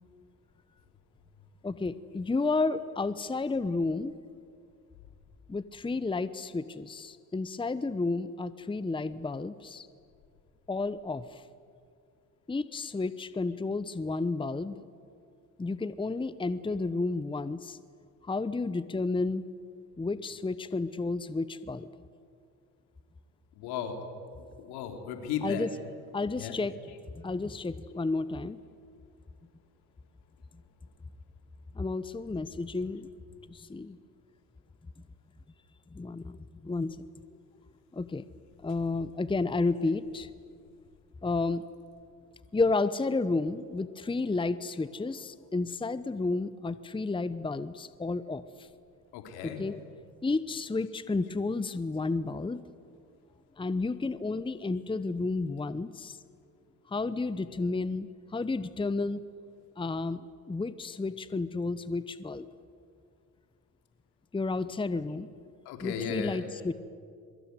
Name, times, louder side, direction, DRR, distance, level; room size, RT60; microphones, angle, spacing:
voice 1, 1.6-4.1 5.5-9.9 10.7-11.4 12.5-14.8 15.6-17.8 18.3-19.4 20.0-21.9 25.4-25.8 26.1-26.7 27.2-28.6 31.8-33.1 33.5-34.0 35.9-37.0 37.9-38.2 38.6-40.3 41.2-41.6 42.5-48.4 49.4-49.8 50.2-52.6 53.6-56.2 56.9-59.2 59.8-62.5 64.3-65.3 65.8-66.7, left 3 dB, 15° left, 15 dB, 0.9 m, -31 dB
voice 2, 23.6-24.0 24.7-25.7 26.4-26.6 49.1-49.6 65.7-66.4, left 7 dB, 75° left, 5 dB, 3.7 m, -35 dB
23.5 x 22.0 x 9.7 m, 2.3 s
hypercardioid pair, 65°, 38 cm